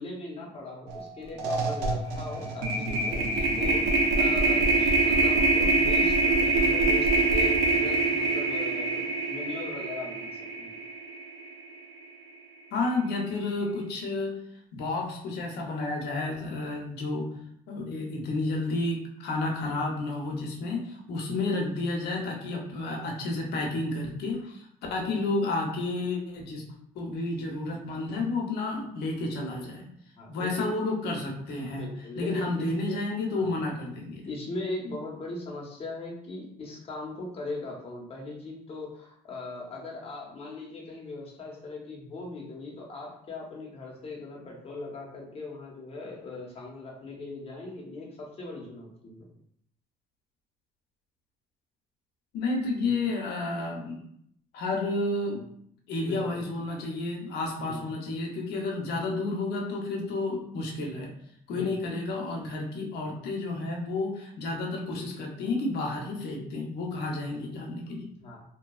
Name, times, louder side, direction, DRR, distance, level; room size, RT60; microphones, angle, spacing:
voice 1, 0.0-10.3 10.6-10.7 30.2-30.7 31.7-33.0 33.3-33.5 34.2-49.3 52.8-52.9 56.1-56.4 57.6-58.0 61.5-61.7 68.2-68.4, left 2 dB, 35° left, -2 dB, 0.8 m, -39 dB
sound 1, 0.9-1.0 1.3-11.6, right 3 dB, 90° right, 0.6 m, -25 dB
voice 2, 12.7-14.3 14.7-17.3 17.7-26.6 26.9-29.9 30.3-31.9 32.2-34.3 52.3-54.0 54.5-55.5 55.9-61.1 61.5-68.1, left 2 dB, 75° left, 0 dB, 0.7 m, -31 dB
2.7 x 2.2 x 2.3 m, 0.69 s
cardioid pair, 110°, 17 cm